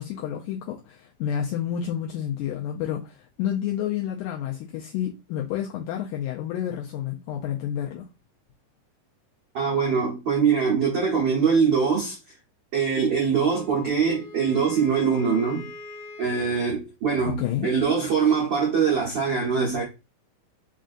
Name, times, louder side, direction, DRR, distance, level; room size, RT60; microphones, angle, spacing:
voice 1, 0.0-8.1 17.2-17.7, left 10 dB, 80° left, 1.9 m, -30 dB
voice 2, 9.5-12.2 12.7-15.7 16.2-19.8, right 6 dB, 75° right, 1.0 m, -23 dB
Wind instrument woodwind instrument, 13.5-16.7, left 3 dB, 60° left, 1.9 m, -43 dB
5.2 x 2.5 x 2.5 m
omnidirectional pair, 3.9 m